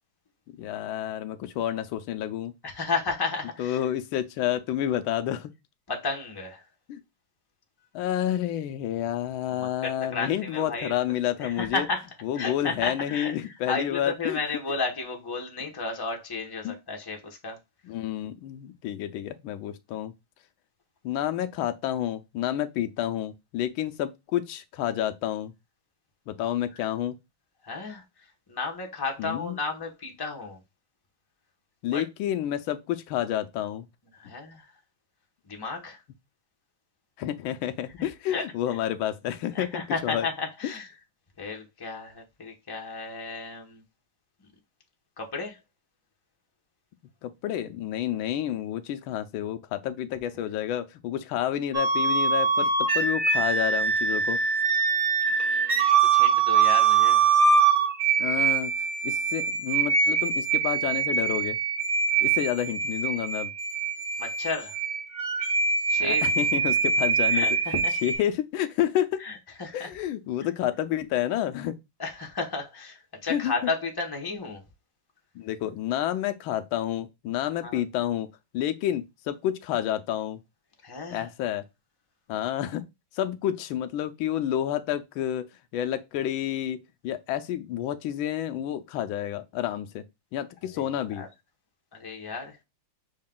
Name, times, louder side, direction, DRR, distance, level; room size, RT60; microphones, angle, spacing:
voice 1, 0.6-2.5 3.6-5.5 6.9-7.0 7.9-11.9 12.2-14.4 15.6-15.7 16.6-16.8 17.8-20.1 21.0-25.5 26.3-27.2 29.2-29.6 31.8-33.9 37.2-40.3 47.2-54.4 58.2-58.7 59.0-61.6 62.2-63.5 66.0-67.5 68.0-69.3 69.7-71.7 73.2-73.5 75.3-80.4 81.1-81.6 82.3-82.8 83.1-85.5 85.7-86.8 87.0-90.0 90.3-91.2, left 11 dB, 80° left, 1.4 m, -29 dB
voice 2, 2.6-3.8 5.9-6.6 9.6-10.9 11.4-12.1 12.3-17.6 27.6-28.0 28.5-30.6 31.9-32.0 34.1-34.7 35.5-36.0 38.0-38.4 39.5-40.9 41.4-43.8 45.2-45.6 55.3-57.3 64.2-64.8 65.9-66.3 67.3-67.9 69.2-69.9 72.0-74.6 77.6-77.8 80.8-81.3 90.7-90.8 91.1-91.3 91.9-92.6, left 4 dB, 30° left, 0.4 m, -33 dB
sound 1, 51.7-68.1, right 5 dB, 35° right, 0.7 m, -24 dB
6.3 x 2.3 x 3.7 m
omnidirectional pair, 2.3 m